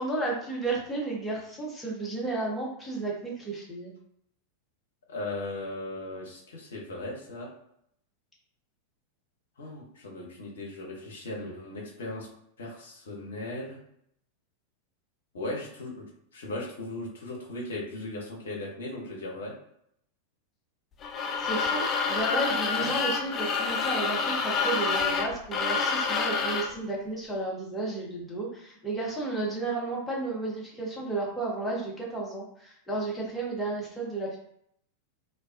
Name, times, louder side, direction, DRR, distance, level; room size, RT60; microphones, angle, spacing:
voice 1, 0.0-3.9 21.4-34.4, right 2 dB, 10° left, -4 dB, 0.9 m, -33 dB
voice 2, 5.1-7.5 9.6-12.3 12.6-13.8 15.3-16.1 16.3-19.5 22.8-22.9, left 2 dB, 65° left, -1 dB, 0.8 m, -37 dB
sound 1, 21.0-26.8, left 5 dB, 25° left, 0.4 m, -28 dB
2.3 x 2.2 x 2.4 m, 0.71 s
figure-of-eight pair, 90°, 0 cm